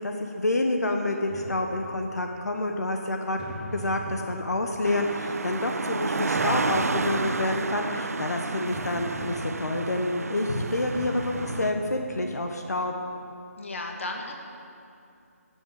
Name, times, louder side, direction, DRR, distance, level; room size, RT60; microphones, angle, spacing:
voice 1, 0.0-3.4 3.7-12.9, left 2 dB, 85° left, 3 dB, 1.2 m, -28 dB
sound 1, 1.3-2.3 3.4-5.0 6.4-7.8 8.7-10.2 10.9-12.3, equal, 5° right, 1.3 m, -39 dB
sound 2, 4.8-11.7, right 3 dB, 70° right, 0.6 m, -31 dB
voice 2, 13.6-14.3, left 2 dB, 50° left, 2 dB, 1.8 m, -34 dB
13.0 x 7.7 x 8.5 m, 2.6 s
figure-of-eight pair, 175°, 8 cm